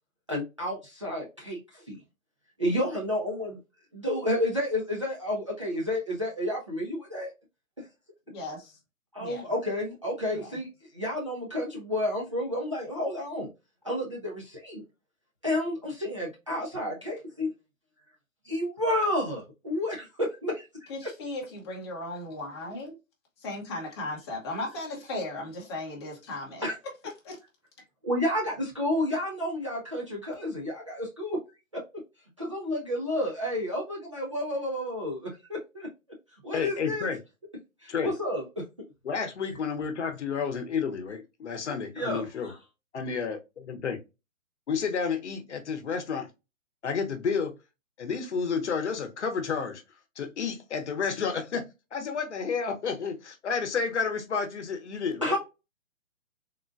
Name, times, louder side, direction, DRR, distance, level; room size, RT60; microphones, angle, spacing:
voice 1, 0.3-2.0 2.6-3.6 3.9-7.3 9.1-10.7 10.9-13.5 13.8-14.8 15.4-17.5 18.5-20.9 26.6-26.7 28.0-31.4 31.7-32.0 32.4-35.9 36.4-37.1 37.8-38.6 41.9-42.6 55.2-55.4, left 1 dB, 25° right, 0.4 m, -30 dB
voice 2, 8.3-8.6 9.2-9.5 10.3-10.5 20.9-22.9 23.4-26.7 27.0-27.4, left 2 dB, 20° left, 0.8 m, -36 dB
voice 3, 36.5-37.2 37.9-38.1 39.0-42.5 42.9-44.0 44.7-46.3 46.8-47.5 48.0-49.8 50.2-51.6 51.9-55.4, left 5 dB, 55° left, 0.9 m, -31 dB
3.6 x 2.2 x 2.4 m
hypercardioid pair, 155°, 41 cm